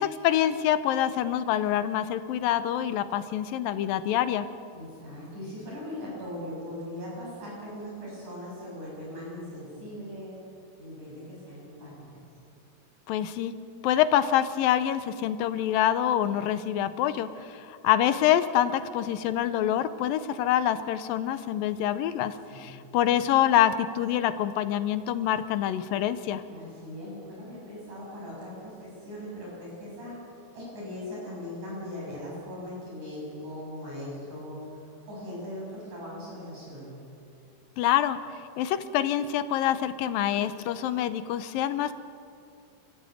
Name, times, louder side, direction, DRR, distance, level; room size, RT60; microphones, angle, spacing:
voice 1, 0.0-4.5 13.1-13.6 13.8-26.4 37.8-38.2 38.6-41.9, left 11 dB, 80° left, 12 dB, 2.5 m, -26 dB
voice 2, 4.7-10.3 10.8-12.2 22.5-22.8 26.5-30.2 30.5-37.0, left 1 dB, 55° right, -5 dB, 8.1 m, -40 dB
25.0 x 14.5 x 9.3 m, 2.4 s
omnidirectional pair, 4.2 m